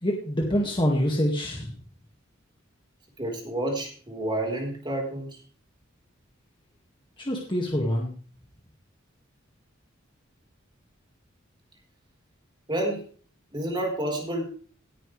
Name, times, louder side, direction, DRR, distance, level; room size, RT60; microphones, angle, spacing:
voice 1, 0.0-1.7 7.2-8.1, equal, 25° left, -1 dB, 2.0 m, -26 dB
voice 2, 3.2-5.4 12.7-13.0 13.5-14.5, right 1 dB, 25° right, 0 dB, 4.2 m, -29 dB
18.0 x 9.2 x 3.3 m, 0.42 s
head